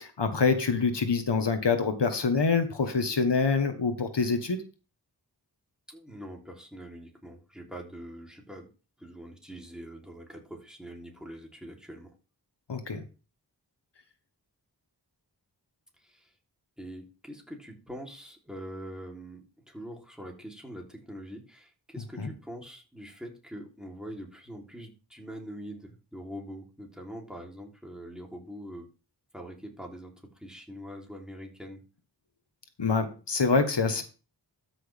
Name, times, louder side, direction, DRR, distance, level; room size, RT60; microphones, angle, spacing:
voice 1, 0.0-4.6 12.7-13.0 22.2-22.3 32.8-34.0, left 4 dB, 80° left, 8 dB, 1.3 m, -26 dB
voice 2, 5.9-8.7 9.0-12.1 16.0-16.3 16.8-28.9 29.3-31.8, equal, ahead, 0 dB, 3.2 m, -43 dB
13.0 x 6.1 x 3.5 m, 0.33 s
wide cardioid pair, 55°, 41 cm